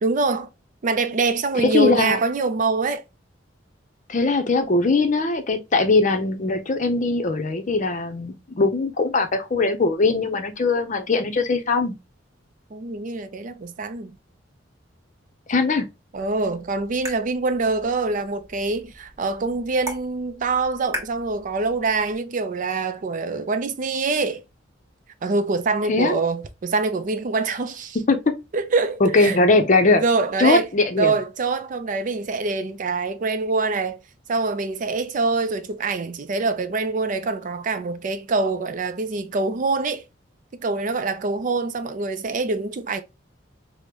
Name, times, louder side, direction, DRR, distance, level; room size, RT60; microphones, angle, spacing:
voice 1, 0.0-0.5 0.8-3.0 12.7-14.1 16.1-24.4 25.2-28.0 28.5-29.4 30.0-30.7 31.0-34.0 34.3-40.0 40.6-43.0, right 3 dB, 40° right, 0.4 m, -24 dB
voice 2, 1.6-2.2 4.1-12.0 15.5-15.9 25.9-26.2 28.1-28.2 29.0-30.0 30.4-31.1, left 3 dB, 40° left, 0.6 m, -20 dB
sound 1, 16.1-22.2, equal, 15° right, 1.2 m, -39 dB
5.0 x 2.1 x 2.9 m
head